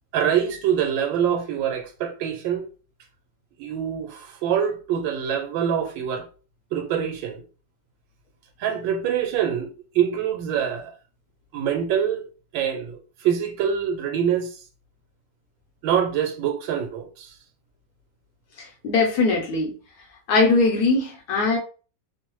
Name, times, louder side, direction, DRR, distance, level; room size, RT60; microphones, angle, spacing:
voice 1, 0.1-2.7 3.6-6.3 6.7-7.4 8.6-9.7 9.9-10.9 11.5-12.2 12.5-14.5 15.8-17.3, right 8 dB, 90° right, 1.4 m, -25 dB
voice 2, 18.6-19.7 20.3-21.6, left 3 dB, 65° left, 1.0 m, -21 dB
3.1 x 2.0 x 3.0 m
omnidirectional pair, 2.1 m